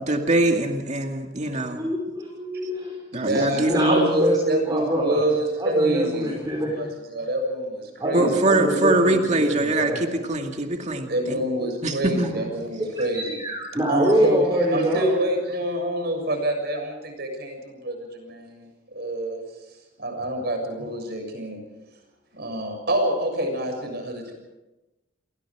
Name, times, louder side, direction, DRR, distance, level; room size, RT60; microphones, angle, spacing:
voice 1, 0.1-1.8 3.1-4.1 8.1-11.4 11.8-12.3, right 2 dB, 40° right, 3 dB, 2.3 m, -23 dB
voice 2, 1.6-3.0 3.3-5.2 5.6-6.8 8.0-10.0 13.1-15.0, equal, 20° right, -2 dB, 5.3 m, -25 dB
voice 3, 3.1-6.4 6.7-8.5 11.1-13.4 13.9-19.4 20.0-21.6 22.3-24.3, right 1 dB, 55° right, 4 dB, 6.9 m, -26 dB
29.5 x 23.0 x 4.9 m, 1.0 s
head